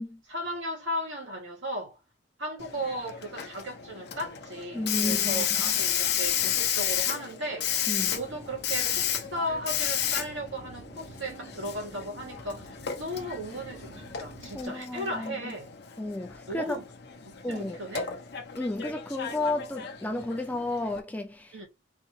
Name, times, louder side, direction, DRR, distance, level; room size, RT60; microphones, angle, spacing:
voice 1, 0.3-2.0 2.4-7.7 8.1-15.7 16.5-16.9 17.2-18.1 21.5-21.7, equal, 75° right, 2.5 m, -36 dB
Hiss, 2.6-21.0, left 9 dB, 55° left, 0.7 m, -32 dB
voice 2, 4.7-5.4 7.9-8.2 14.5-15.5 16.0-16.8 17.4-17.8 18.5-21.6, left 2 dB, 10° left, 0.3 m, -32 dB
sound 1, 8.1-14.7, right 2 dB, 20° right, 1.1 m, -49 dB
4.0 x 3.2 x 3.1 m
head